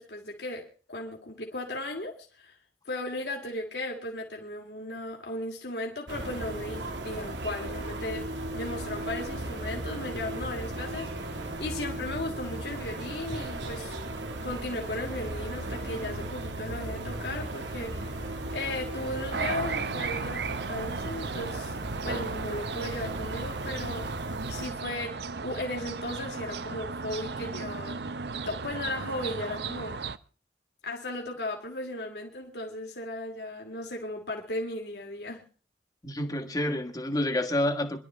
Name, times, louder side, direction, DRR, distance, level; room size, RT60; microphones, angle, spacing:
voice 1, 0.0-2.5 2.8-13.9 14.4-18.3 18.5-21.8 22.0-24.1 24.5-28.0 28.5-30.0 30.8-35.4, left 1 dB, 65° left, 2.8 m, -36 dB
sound 1, 6.1-24.7, right 1 dB, 85° right, 2.0 m, -36 dB
sound 2, 19.3-30.2, right 5 dB, 65° right, 0.7 m, -35 dB
voice 2, 36.0-38.0, left 1 dB, 20° left, 1.6 m, -28 dB
26.0 x 12.0 x 3.5 m
head